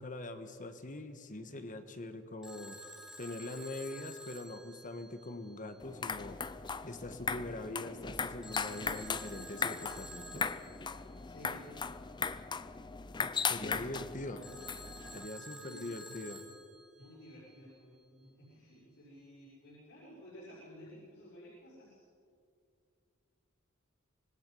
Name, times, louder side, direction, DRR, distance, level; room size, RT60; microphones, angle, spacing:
voice 1, 0.0-2.8 3.2-6.4 6.8-10.5 13.4-14.4 15.1-16.4, left 2 dB, 40° left, 8 dB, 1.5 m, -43 dB
Telephone, 2.4-5.5 8.4-11.0 14.4-17.1, equal, 5° right, 3.3 m, -50 dB
sound 1, 5.8-15.3, left 5 dB, 20° left, 0.5 m, -38 dB
voice 2, 11.3-11.7 15.6-15.8 17.0-22.0, equal, 65° left, -7 dB, 6.4 m, -54 dB
25.5 x 20.5 x 5.5 m, 2.3 s
head